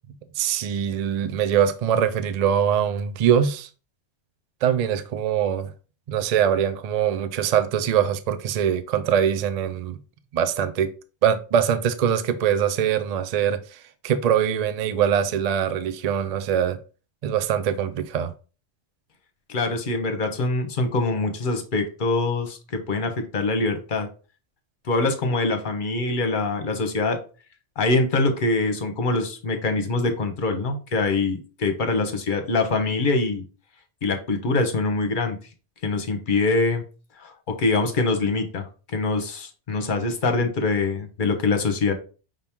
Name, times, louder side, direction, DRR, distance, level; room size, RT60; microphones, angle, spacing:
voice 1, 0.4-3.7 4.6-5.7 6.1-10.0 10.3-10.9 11.2-16.8 17.2-18.3, right 8 dB, 65° right, 0.4 m, -23 dB
voice 2, 19.5-24.1 24.9-27.2 27.8-33.4 34.0-35.4 35.8-36.8 37.2-41.9, left 3 dB, 50° left, 0.9 m, -24 dB
5.3 x 2.9 x 3.5 m
omnidirectional pair, 1.2 m